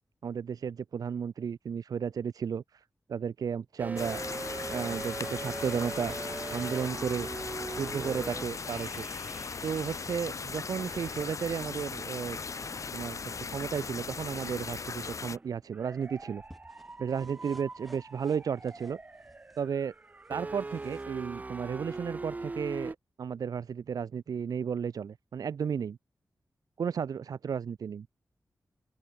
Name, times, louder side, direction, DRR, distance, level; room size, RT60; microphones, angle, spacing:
voice 1, 0.2-2.8 3.1-4.2 4.7-6.2 6.5-7.3 7.8-9.1 9.6-12.4 12.9-16.4 17.0-19.0 19.6-19.9 20.3-26.0 26.8-28.1, right 7 dB, 80° right, 0.4 m, -33 dB
sound 1, 3.8-10.3 10.8-22.9, right 3 dB, 25° right, 0.5 m, -42 dB
sound 2, 4.0-15.4, left 5 dB, 60° left, 1.5 m, -38 dB
sound 3, 13.8-21.0, equal, ahead, 4.5 m, -60 dB
open air
wide cardioid pair, 135°, 6 cm